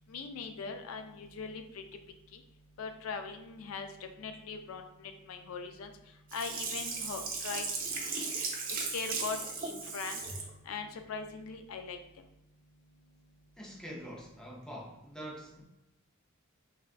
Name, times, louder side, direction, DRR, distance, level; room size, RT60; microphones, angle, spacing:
voice 1, 0.1-1.8 2.8-3.9 4.2-5.9 6.3-7.6 8.9-9.4 9.6-10.2 10.7-12.0, left 5 dB, 85° left, 6 dB, 0.4 m, -40 dB
Sink (filling or washing), 6.3-10.5 10.9-11.0, right 4 dB, 40° right, 0.6 m, -36 dB
voice 2, 13.6-15.6, equal, 5° left, -1 dB, 0.4 m, -45 dB
3.4 x 2.3 x 2.4 m, 0.90 s
head